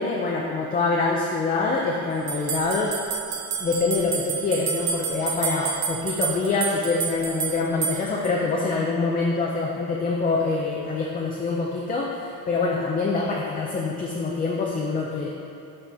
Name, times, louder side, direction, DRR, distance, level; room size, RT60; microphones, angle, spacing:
voice 1, 0.0-2.9 3.6-15.3, left 3 dB, 25° left, -2 dB, 0.5 m, -25 dB
sound 1, 2.3-8.3, right 8 dB, 65° right, 0.8 m, -29 dB
12.0 x 4.2 x 3.4 m, 2.9 s
cardioid pair, 170°, 37 cm